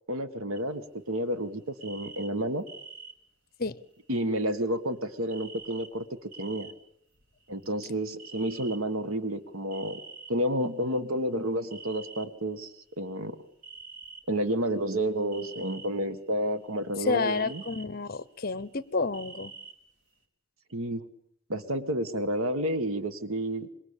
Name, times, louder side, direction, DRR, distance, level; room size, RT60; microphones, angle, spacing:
voice 1, 0.1-2.7 4.1-6.1 6.4-6.7 7.5-10.0 10.3-13.4 14.3-17.6 20.7-21.0 21.5-23.7, right 1 dB, 85° right, 11 dB, 1.7 m, -30 dB
sound 1, 0.6-1.1 1.4-1.5 1.7-3.1 3.9-4.0 5.2-5.9 6.2-6.7 7.1-7.9 8.2-8.8 9.7-10.7 11.7-12.3 12.9-13.0 13.6-14.2 15.3-15.9 16.2-17.0 17.3-17.8 18.3-19.7 20.1-20.2, right 4 dB, 65° right, 4.2 m, -46 dB
voice 2, 17.0-19.5, left 4 dB, 45° left, 18 dB, 0.9 m, -30 dB
26.0 x 22.5 x 8.7 m, 0.73 s
head